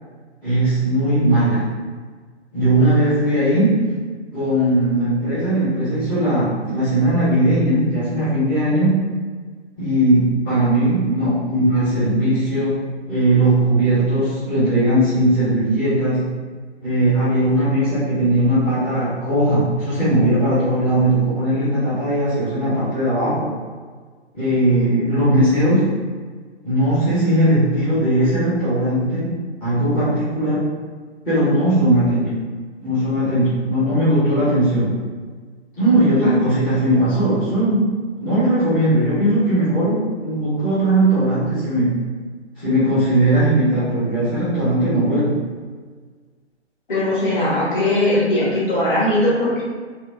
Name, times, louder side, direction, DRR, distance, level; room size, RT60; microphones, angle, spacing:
voice 1, 0.4-1.7 2.5-3.8 4.3-9.0 9.8-12.8 13.1-16.3 16.8-23.5 24.3-25.9 26.6-29.4 29.6-30.7 31.2-32.3 32.8-35.0 35.8-37.9 38.2-42.0 42.6-45.4, right 1 dB, 5° left, -15 dB, 0.5 m, -18 dB
voice 2, 46.9-49.6, left 1 dB, 45° left, -7 dB, 1.5 m, -19 dB
4.1 x 2.1 x 2.6 m, 1.5 s
figure-of-eight pair, 130°, 34 cm